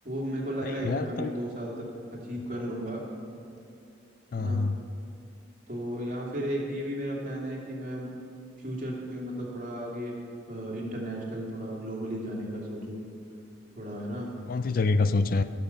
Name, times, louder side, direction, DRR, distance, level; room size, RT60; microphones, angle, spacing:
voice 1, 0.0-3.0 4.4-4.6 5.7-8.1 8.6-10.2 10.5-13.0 13.7-14.3, equal, 40° right, -2 dB, 2.5 m, -34 dB
voice 2, 0.6-1.4 4.3-4.8 14.5-15.4, left 3 dB, 45° left, 12 dB, 0.4 m, -26 dB
17.0 x 6.8 x 6.9 m, 2.5 s
head